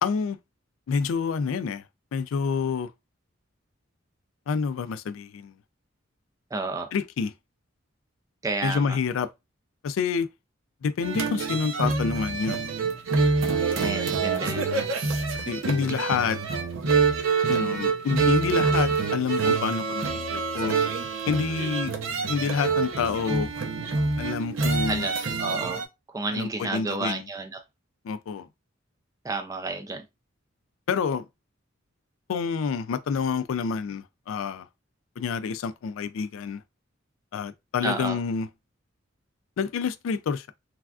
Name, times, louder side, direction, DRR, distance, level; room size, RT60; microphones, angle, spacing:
voice 1, 0.0-0.4 0.9-1.8 2.1-2.9 4.5-5.5 6.9-7.3 8.6-9.3 9.8-10.3 10.8-12.6 15.5-16.4 17.5-20.8 21.3-21.9 22.3-23.5 24.2-25.1 26.3-27.2 28.0-28.5 30.9-31.3 32.3-34.7 35.2-36.6 37.3-38.5 39.6-40.5, left 5 dB, 85° left, 0.3 m, -28 dB
voice 2, 6.5-6.9 8.4-9.0 13.8-14.7 24.9-25.8 26.1-27.6 29.2-30.0 37.8-38.2, right 3 dB, 15° right, 0.3 m, -31 dB
sound 1, 11.0-25.9, right 4 dB, 90° right, 0.6 m, -26 dB
3.3 x 2.4 x 2.3 m
head